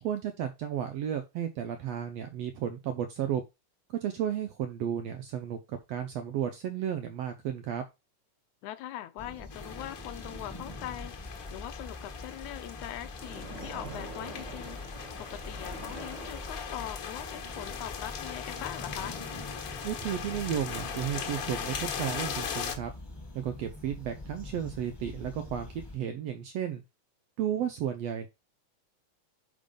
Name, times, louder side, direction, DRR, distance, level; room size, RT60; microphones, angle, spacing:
voice 1, 0.0-3.4 4.0-7.8 19.8-22.9 23.3-25.7 25.9-26.8 27.4-28.3, right 9 dB, 75° right, 1.5 m, -33 dB
voice 2, 8.6-14.8 15.2-19.2, left 13 dB, 80° left, 1.9 m, -42 dB
sound 1, 9.2-26.0, left 2 dB, 10° left, 1.4 m, -44 dB
sound 2, 9.5-22.7, left 7 dB, 55° left, 2.0 m, -40 dB
Splash splatter, 13.1-17.2, right 2 dB, 40° right, 1.9 m, -45 dB
5.1 x 5.0 x 5.3 m
omnidirectional pair, 3.7 m